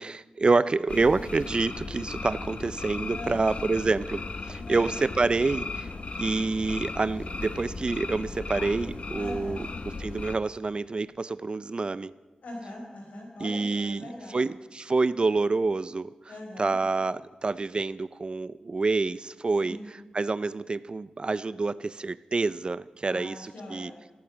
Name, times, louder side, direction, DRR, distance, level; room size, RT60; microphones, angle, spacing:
voice 1, 0.0-5.9 6.2-9.6 10.0-12.1 13.4-14.1 14.3-16.1 16.6-19.8 20.1-23.9, right 3 dB, 40° right, 17 dB, 0.4 m, -27 dB
sound 1, 0.9-10.4, left 3 dB, 55° left, 1.0 m, -36 dB
voice 2, 3.1-3.5 4.7-4.9 9.2-9.6 12.4-14.4 16.3-16.8 19.6-19.8 23.1-24.0, left 1 dB, 85° left, 1 dB, 4.5 m, -41 dB
14.5 x 13.0 x 7.4 m, 1.2 s
cardioid pair, 65°, 2 cm